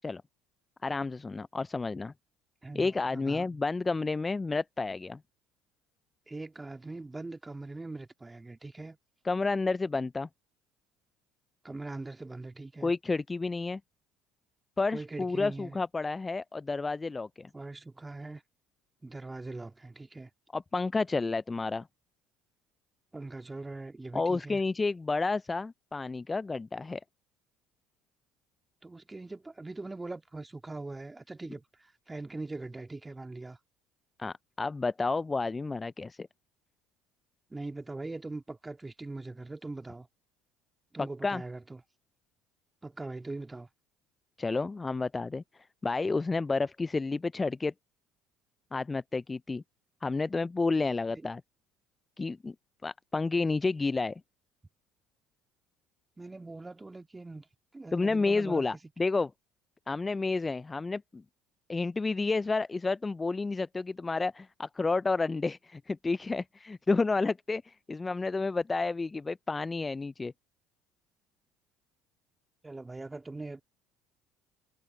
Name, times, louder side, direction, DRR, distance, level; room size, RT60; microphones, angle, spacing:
voice 1, 0.8-2.1 2.7-5.2 9.2-10.3 12.8-13.8 14.8-17.5 20.5-21.9 24.1-27.0 34.2-36.3 41.0-41.4 44.4-45.4 45.8-47.7 48.7-49.6 50.0-51.4 52.2-52.5 52.8-54.2 57.9-59.3 59.9-61.2 61.7-70.3, left 3 dB, 20° left, 0.4 m, -30 dB
voice 2, 2.6-3.5 6.3-9.0 11.6-12.9 14.9-15.8 17.5-18.4 19.0-20.3 23.1-24.6 28.8-33.6 37.5-40.1 40.9-41.8 42.8-43.7 51.1-51.3 56.2-57.5 57.7-58.6 72.6-73.6, right 2 dB, 15° right, 2.5 m, -41 dB
hypercardioid pair, 65°, 0 cm